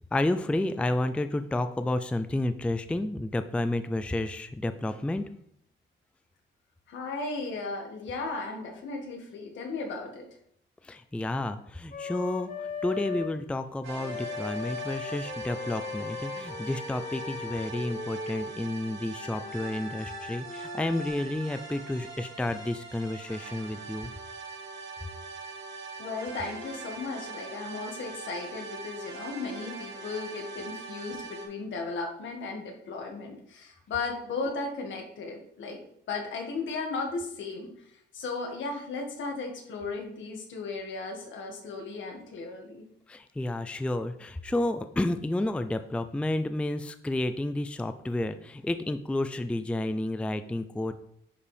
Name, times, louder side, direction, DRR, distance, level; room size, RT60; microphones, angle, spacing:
voice 1, 0.1-5.3 10.8-24.1 43.1-51.0, left 1 dB, 5° left, 10 dB, 0.4 m, -31 dB
voice 2, 6.9-10.2 26.0-35.8 36.1-37.7 38.1-42.8, left 3 dB, 70° left, 2 dB, 1.8 m, -35 dB
Wind instrument woodwind instrument, 11.9-13.3 14.0-18.5 19.1-21.1, left 5 dB, 40° left, 1.2 m, -38 dB
sound 1, 13.8-31.5, right 4 dB, 75° right, 2.2 m, -42 dB
10.0 x 4.8 x 3.4 m, 0.70 s
cardioid pair, 90°, 20 cm